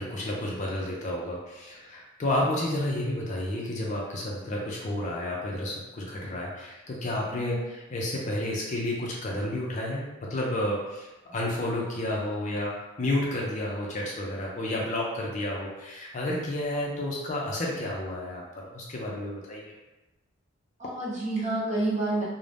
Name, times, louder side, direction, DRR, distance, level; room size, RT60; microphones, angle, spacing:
voice 1, 0.0-19.8, left 1 dB, 35° left, -3 dB, 0.4 m, -31 dB
voice 2, 7.3-7.7 20.8-22.2, right 2 dB, 35° right, -7 dB, 0.8 m, -29 dB
2.5 x 2.0 x 3.2 m, 1.1 s
head